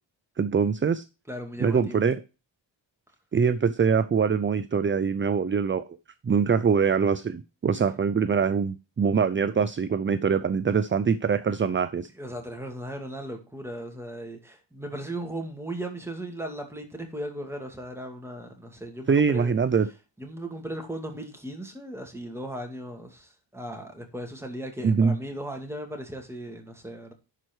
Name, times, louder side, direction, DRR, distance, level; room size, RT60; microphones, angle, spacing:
voice 1, 0.4-1.0 1.6-2.2 3.3-5.9 6.2-12.1 19.1-19.9 24.8-25.1, right 6 dB, 30° right, 0.4 m, -23 dB
voice 2, 1.3-2.0 12.1-19.5 20.2-27.1, right 1 dB, 5° right, 2.3 m, -37 dB
11.0 x 4.6 x 4.5 m
wide cardioid pair, 115°, 46 cm